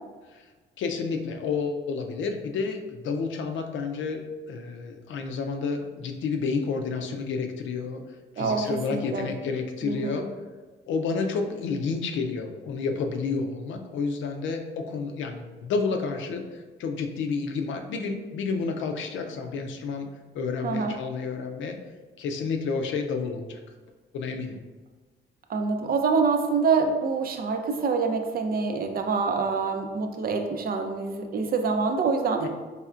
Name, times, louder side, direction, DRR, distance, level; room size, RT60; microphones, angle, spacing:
voice 1, 0.8-4.2 4.5-8.0 8.4-10.3 10.9-20.1 20.3-21.8 22.2-23.6 24.1-24.6 32.4-32.5, left 4 dB, 75° left, 4 dB, 0.5 m, -30 dB
voice 2, 8.9-9.3 9.8-10.2 20.6-20.9 25.5-32.5, right 4 dB, 50° right, 5 dB, 0.5 m, -26 dB
4.3 x 3.3 x 2.4 m, 1.3 s
cardioid pair, 90°, 20 cm